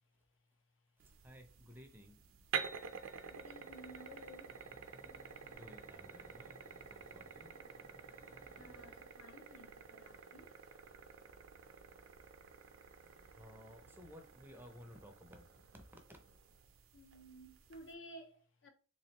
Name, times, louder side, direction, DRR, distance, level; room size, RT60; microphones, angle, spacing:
voice 1, 1.0-2.2 5.5-6.6 6.9-7.6 13.0-16.2, equal, 10° right, 0.5 m, -57 dB
sound 1, 1.0-17.9, right 6 dB, 75° right, 0.5 m, -49 dB
voice 2, 3.3-4.5 6.3-6.4 6.7-6.8 8.0-11.2 12.9-13.0 13.3-13.4 13.9-14.0 16.9-18.7, equal, 65° left, 0.7 m, -56 dB
sound 2, 3.5-9.0, right 1 dB, 40° left, 1.5 m, -62 dB
3.5 x 3.1 x 2.9 m
head